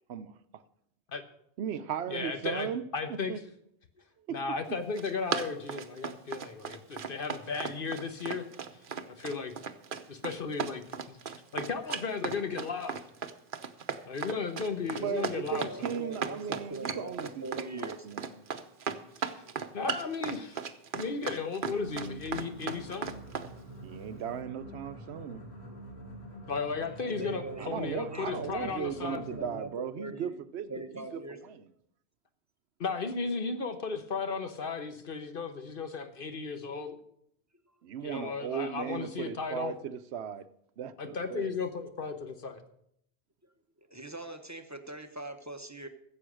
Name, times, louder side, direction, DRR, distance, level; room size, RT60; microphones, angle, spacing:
voice 1, 1.6-3.4 4.3-4.4 4.7-4.8 14.9-18.4 23.8-25.4 27.6-31.7 37.8-40.5 40.8-41.5, right 8 dB, 80° right, 0.9 m, -37 dB
voice 2, 2.1-3.4 4.3-8.5 9.1-9.5 10.1-11.2 11.5-13.0 14.0-15.7 19.2-19.4 19.7-20.6 20.9-23.1 26.5-29.2 32.8-37.0 38.0-39.7 41.0-42.6, left 4 dB, 55° left, 1.2 m, -35 dB
Run, 4.8-23.5, right 6 dB, 55° right, 0.9 m, -36 dB
voice 3, 14.8-18.0 19.4-19.6 27.1-30.4 30.7-31.4 43.9-45.9, right 2 dB, 15° right, 0.9 m, -42 dB
sound 1, 21.6-29.9, right 1 dB, 80° left, 2.1 m, -46 dB
14.5 x 7.6 x 6.3 m
omnidirectional pair, 1.1 m